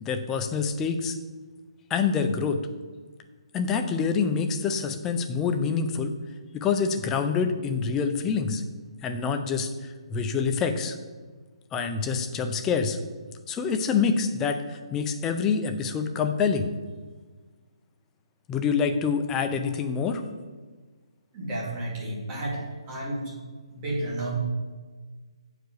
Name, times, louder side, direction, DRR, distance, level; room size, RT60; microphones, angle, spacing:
voice 1, 0.0-1.1 1.9-2.6 3.5-6.1 6.5-8.6 9.0-11.0 11.7-13.0 13.5-16.7 18.5-20.2, left 5 dB, 10° left, 6 dB, 0.4 m, -26 dB
voice 2, 21.3-22.6 22.9-23.3 23.7-24.4, right 1 dB, 20° right, -5 dB, 2.4 m, -31 dB
8.0 x 4.9 x 6.4 m, 1.4 s
hypercardioid pair, 165°, 3 cm